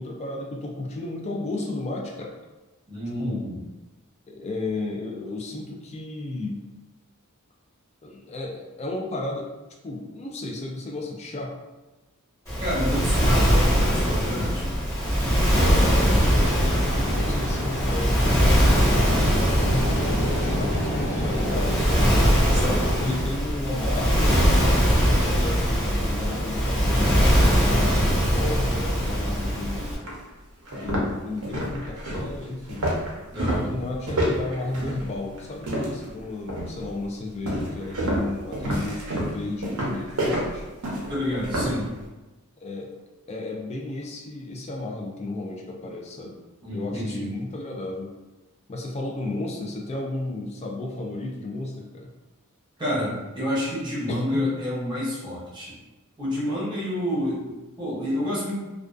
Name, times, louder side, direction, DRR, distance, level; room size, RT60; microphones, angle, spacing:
voice 1, 0.0-2.3 3.2-3.4 4.3-6.6 8.0-9.5 9.8-11.6 15.6-22.1 23.0-29.9 30.7-32.9 33.4-40.7 42.6-42.9 43.3-46.4 46.7-48.1 48.7-52.1 54.1-54.5, left 2 dB, 30° left, 0 dB, 0.3 m, -33 dB
voice 2, 2.9-3.6 12.6-14.7 22.5-22.8 33.3-33.7 41.1-41.9 46.6-47.3 52.8-55.7 56.2-58.5, left 1 dB, 20° right, -8 dB, 0.7 m, -29 dB
Waves surf, 12.5-30.0, equal, 15° left, 1.1 m, -21 dB
Ocean, 16.4-23.1, equal, 60° left, 1.2 m, -29 dB
sound 1, 30.1-30.2 30.6-36.1 36.5-36.9 37.5-41.8, right 1 dB, 70° right, 0.6 m, -28 dB
2.5 x 2.3 x 2.3 m, 1.1 s
head